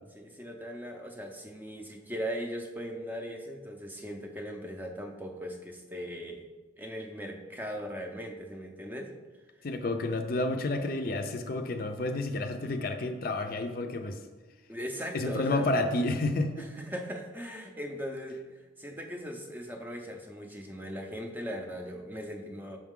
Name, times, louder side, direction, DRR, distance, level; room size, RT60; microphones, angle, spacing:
voice 1, 0.1-6.4 6.8-9.1 14.7-15.7 16.6-18.5 18.8-22.8, equal, 10° right, 3 dB, 0.5 m, -39 dB
voice 2, 9.6-14.2 15.1-16.7, left 2 dB, 50° left, 6 dB, 0.5 m, -30 dB
6.2 x 5.7 x 3.7 m, 1.3 s
head